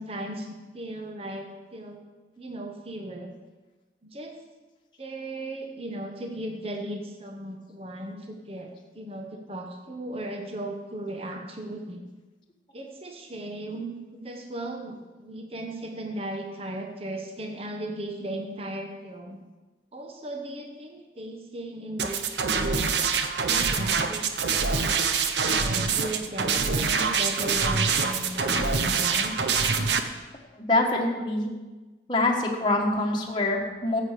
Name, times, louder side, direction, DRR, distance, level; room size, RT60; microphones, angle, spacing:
voice 1, 0.0-2.0 2.4-3.3 4.0-4.4 5.0-12.0 12.7-19.4 19.9-23.0 23.5-24.3 24.6-24.9 25.4-29.4, right 1 dB, 30° right, 3 dB, 1.3 m, -36 dB
sound 1, 22.0-30.0, right 5 dB, 70° right, 0.9 m, -25 dB
voice 2, 30.5-31.5 32.1-34.0, left 2 dB, 25° left, -2 dB, 1.4 m, -25 dB
13.5 x 7.8 x 6.6 m, 1.2 s
head